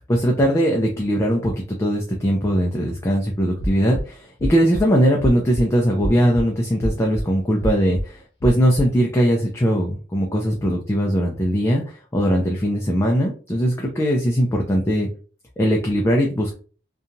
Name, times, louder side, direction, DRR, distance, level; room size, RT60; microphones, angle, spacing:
voice 1, 0.1-15.1 15.6-16.5, equal, 15° left, -1 dB, 0.3 m, -20 dB
sound 1, 3.6-4.0 4.4-4.8 5.2-5.6 6.0-6.4 6.8-7.2 7.6-8.0 8.4-8.8, equal, 30° left, 0.9 m, -27 dB
2.8 x 2.2 x 2.6 m, 0.39 s
head